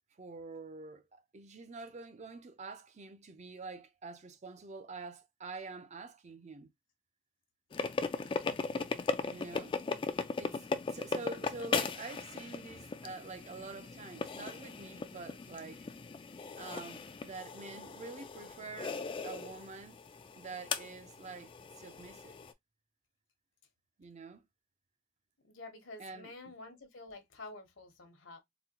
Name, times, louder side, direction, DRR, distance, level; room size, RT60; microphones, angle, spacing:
voice 1, 0.2-6.7 9.3-9.8 10.4-15.9 16.6-20.0 20.3-22.4 24.0-24.5 26.0-26.5, right 3 dB, 35° right, 0.5 m, -47 dB
sound 1, 7.7-22.5, left 4 dB, 25° left, 0.3 m, -38 dB
voice 2, 25.4-28.4, left 2 dB, 75° left, 1.0 m, -49 dB
4.0 x 2.1 x 2.8 m
head